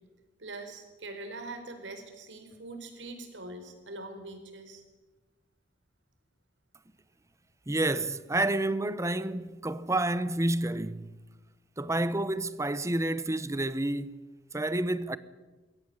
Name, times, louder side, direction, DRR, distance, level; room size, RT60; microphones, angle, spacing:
voice 1, 0.4-4.8, right 2 dB, 75° right, 4.5 m, -43 dB
voice 2, 7.7-11.1 11.8-14.1 14.5-15.2, right 2 dB, 15° right, 0.8 m, -29 dB
21.5 x 17.0 x 9.8 m
head